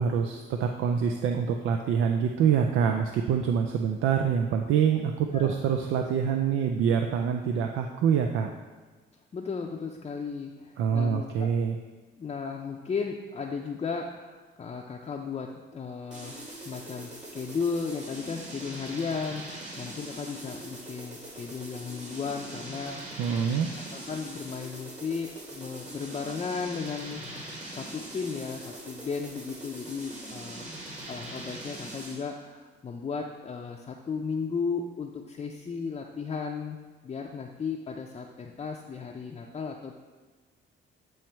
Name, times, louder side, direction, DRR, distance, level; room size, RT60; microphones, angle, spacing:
voice 1, 0.0-8.5 10.8-11.8 23.2-23.9, right 7 dB, 80° right, 4 dB, 0.5 m, -26 dB
voice 2, 9.3-11.5 12.2-16.3 16.6-27.5 27.7-30.7 31.1-36.8 37.0-39.9, left 5 dB, 30° left, 0 dB, 0.5 m, -35 dB
sound 1, 16.1-32.3, right 1 dB, 35° right, 1.8 m, -42 dB
8.9 x 3.1 x 4.4 m, 1.4 s
cardioid pair, 90°, 20 cm